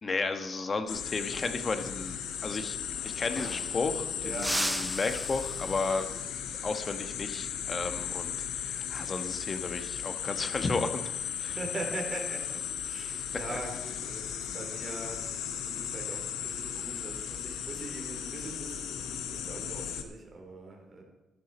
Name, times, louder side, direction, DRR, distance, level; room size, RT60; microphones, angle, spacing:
voice 1, 0.0-2.8 3.0-6.2 6.6-11.1 11.4-11.6 13.5-13.6, left 3 dB, 35° left, 8 dB, 1.2 m, -33 dB
sound 1, 0.9-20.0, left 8 dB, 90° left, 1.0 m, -36 dB
sound 2, 2.7-2.8 3.0-4.0 4.4-6.1 8.6-8.9 10.3-10.8, right 2 dB, 10° right, 0.5 m, -37 dB
voice 2, 4.2-4.8 11.5-21.0, right 2 dB, 35° right, 1 dB, 3.6 m, -42 dB
12.5 x 10.5 x 4.2 m, 0.99 s
cardioid pair, 90°, 0 cm